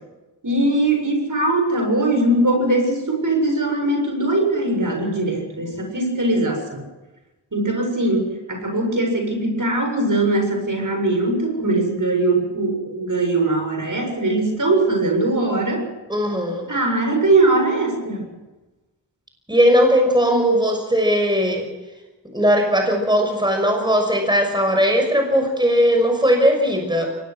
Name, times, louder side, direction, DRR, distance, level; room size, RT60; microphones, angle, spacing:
voice 1, 0.4-6.8 7.5-15.9 16.7-18.2, right 2 dB, 50° right, 3 dB, 7.5 m, -21 dB
voice 2, 16.1-16.7 19.5-21.7 22.3-27.1, equal, 10° right, 3 dB, 6.1 m, -18 dB
23.0 x 19.5 x 6.4 m, 1.1 s
cardioid pair, 45°, 42 cm